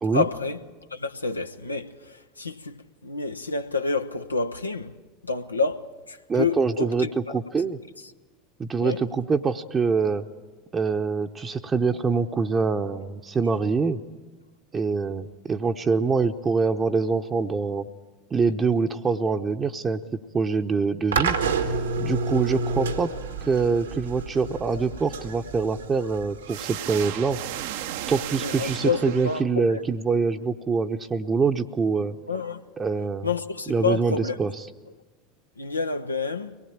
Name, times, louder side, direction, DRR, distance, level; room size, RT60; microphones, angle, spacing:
voice 1, 0.1-0.6 0.9-4.9 5.2-7.4 8.8-9.0 28.4-29.8 32.3-32.6 33.2-34.4 35.6-36.6, left 4 dB, 85° left, 0.7 m, -28 dB
voice 2, 6.3-7.8 8.6-10.2 10.7-14.0 14.7-17.9 18.3-20.0 20.3-21.4 22.0-23.2 23.4-27.4 28.1-32.1 32.8-33.3 33.7-34.5, right 4 dB, 25° right, 0.8 m, -25 dB
sound 1, 21.1-28.2, right 4 dB, 75° right, 1.5 m, -30 dB
sound 2, 26.5-29.9, right 12 dB, 60° right, 0.8 m, -34 dB
23.0 x 19.0 x 8.9 m
figure-of-eight pair, 75°, 0 cm